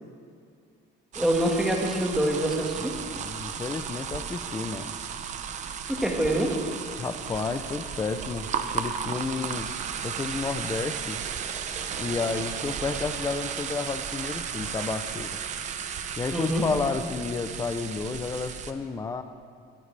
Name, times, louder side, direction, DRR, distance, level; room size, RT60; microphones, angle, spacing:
voice 1, 1.1-2.9 5.9-6.5 16.3-16.6, right 1 dB, ahead, -1 dB, 1.7 m, -25 dB
sound 1, 1.1-18.7, right 7 dB, 35° right, 0.8 m, -34 dB
voice 2, 2.9-4.9 7.0-9.7 10.0-11.2 12.0-15.4 16.2-19.2, left 4 dB, 15° left, 10 dB, 0.6 m, -31 dB
22.5 x 14.0 x 3.4 m, 2.2 s
cardioid pair, 170°, 21 cm